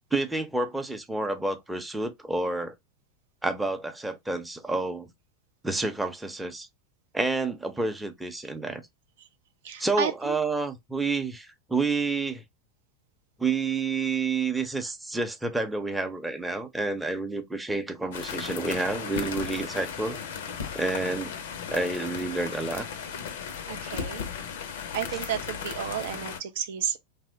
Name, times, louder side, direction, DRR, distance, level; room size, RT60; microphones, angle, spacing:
voice 1, 0.1-2.7 3.4-5.1 5.6-6.7 7.1-8.8 9.8-12.4 13.4-20.2 20.7-21.3 21.7-22.9, right 3 dB, 5° right, 0.5 m, -29 dB
voice 2, 9.6-10.4 23.7-24.2 24.9-27.0, right 8 dB, 60° right, 0.3 m, -32 dB
sound 1, 18.1-26.4, left 7 dB, 60° left, 0.4 m, -36 dB
2.9 x 2.0 x 2.6 m
figure-of-eight pair, 85°, 0 cm